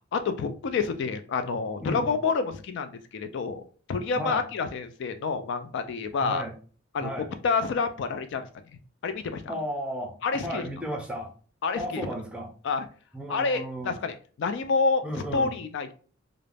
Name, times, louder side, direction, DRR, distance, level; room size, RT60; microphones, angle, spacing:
voice 1, 0.1-6.4 6.9-7.1 7.4-8.5 8.7-9.5 10.2-10.7 11.6-12.1 12.6-12.8 13.3-15.0 15.3-15.9, left 4 dB, 60° left, 0.3 m, -28 dB
voice 2, 4.1-4.4 6.2-6.5 7.0-7.3 9.5-11.3 11.8-12.5 13.1-14.0 15.0-15.6, equal, 5° right, 0.5 m, -34 dB
2.3 x 2.0 x 3.3 m
head